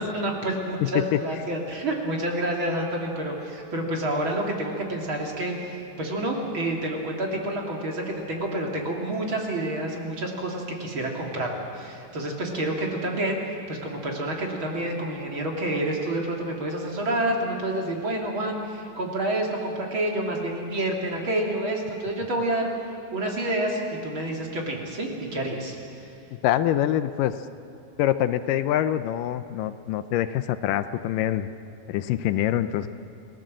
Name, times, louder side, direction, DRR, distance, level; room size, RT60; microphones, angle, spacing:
voice 1, 0.0-22.7 23.1-25.8, right 1 dB, 40° right, 0 dB, 3.1 m, -28 dB
voice 2, 0.8-1.2 26.4-27.3 28.0-31.5 31.9-32.9, left 12 dB, 80° left, 12 dB, 2.3 m, -25 dB
29.5 x 18.5 x 7.5 m, 2.7 s
omnidirectional pair, 3.9 m